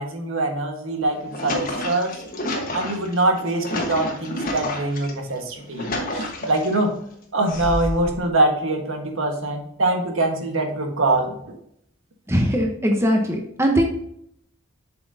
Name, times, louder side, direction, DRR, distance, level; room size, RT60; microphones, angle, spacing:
voice 1, 0.0-2.1 2.7-6.9 7.3-11.3, right 2 dB, 75° right, 3 dB, 1.4 m, -23 dB
sound 1, 1.0-5.1 5.6-6.8 7.5-8.2, left 1 dB, 45° left, 1.3 m, -30 dB
voice 2, 12.3-13.8, equal, 15° right, 2 dB, 0.9 m, -20 dB
7.4 x 6.0 x 2.7 m, 0.70 s
head